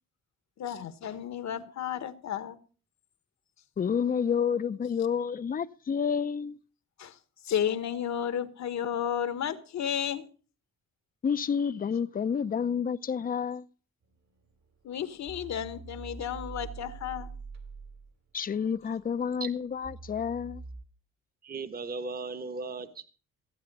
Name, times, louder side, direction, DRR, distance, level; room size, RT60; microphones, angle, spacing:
voice 1, 0.6-2.6 7.0-7.2 7.4-10.2 14.8-17.3, left 9 dB, 65° left, 1.3 m, -32 dB
voice 2, 3.8-6.6 11.2-13.7 18.3-20.6, left 7 dB, 30° left, 0.6 m, -29 dB
sound 1, 14.1-14.7 15.3-18.1 18.5-20.8, right 4 dB, 60° right, 2.4 m, -44 dB
voice 3, 21.4-23.1, right 4 dB, 30° right, 1.1 m, -37 dB
15.5 x 8.9 x 5.4 m
cardioid pair, 90°, 30 cm